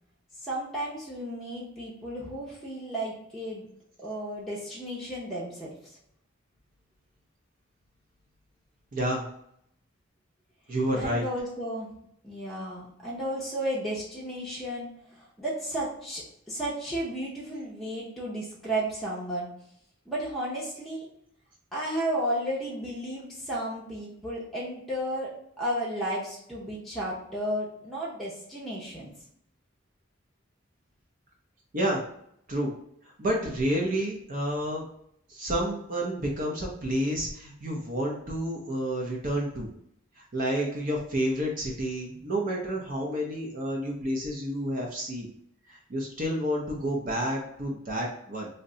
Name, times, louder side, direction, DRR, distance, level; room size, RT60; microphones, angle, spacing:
voice 1, 0.4-3.7 4.0-5.7 11.0-11.9 12.2-19.5 20.1-21.1 21.7-25.3 25.6-29.1, right 1 dB, ahead, -7 dB, 0.6 m, -33 dB
voice 2, 8.9-9.3 10.7-11.2 31.7-32.0 32.5-32.7 33.0-34.8 35.3-39.7 40.2-45.3 45.7-48.5, equal, 45° right, -2 dB, 0.6 m, -30 dB
2.6 x 2.1 x 3.7 m, 0.70 s
head